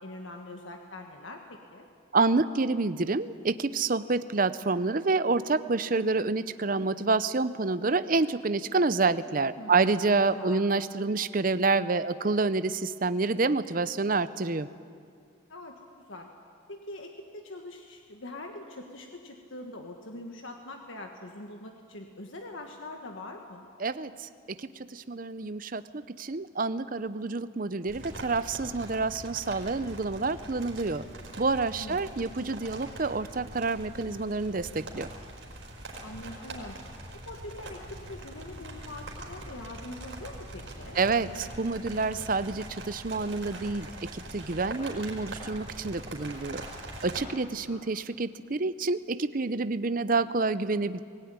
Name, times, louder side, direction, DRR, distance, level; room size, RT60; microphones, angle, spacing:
voice 1, 0.0-1.9 9.3-9.9 10.3-10.6 15.5-15.7 16.1-16.3 16.7-23.7 31.8-32.1 36.0-36.8 37.1-41.0 47.5-47.8, left 2 dB, 70° left, 3 dB, 1.5 m, -43 dB
voice 2, 2.1-14.7 23.8-31.0 31.4-35.1 40.9-46.6 47.0-51.0, right 3 dB, 40° right, 13 dB, 0.6 m, -28 dB
sound 1, 27.9-47.2, right 1 dB, 65° right, 4.7 m, -43 dB
22.5 x 16.5 x 9.7 m, 2.2 s
head